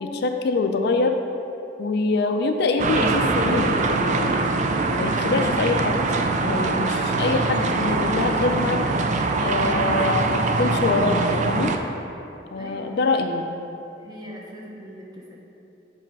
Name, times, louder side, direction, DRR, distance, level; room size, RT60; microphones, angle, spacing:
voice 1, 0.0-1.1 1.8-4.4 4.9-6.0 6.4-8.8 9.4-11.7 12.5-13.5, left 3 dB, 60° left, 5 dB, 0.4 m, -24 dB
sound 1, 2.8-11.8, right 3 dB, 40° right, 0.4 m, -23 dB
voice 2, 12.6-13.2 14.0-15.4, equal, 25° right, -3 dB, 0.9 m, -40 dB
7.5 x 3.2 x 5.3 m, 2.8 s
head